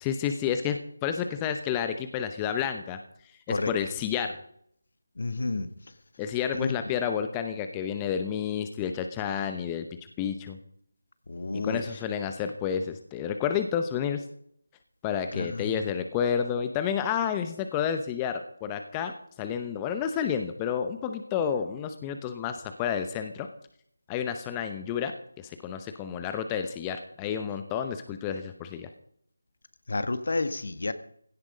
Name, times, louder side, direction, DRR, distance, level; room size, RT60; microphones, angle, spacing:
voice 1, 0.0-3.0 3.5-4.4 6.2-9.9 10.2-10.6 11.5-14.2 15.0-23.5 24.1-28.9, left 8 dB, 15° left, 7 dB, 0.8 m, -30 dB
voice 2, 5.2-5.7 6.5-6.7 11.3-11.8 15.3-15.7 29.9-30.9, left 3 dB, 55° left, 12 dB, 1.5 m, -30 dB
16.5 x 13.0 x 5.1 m, 0.67 s
figure-of-eight pair, 160°, 0 cm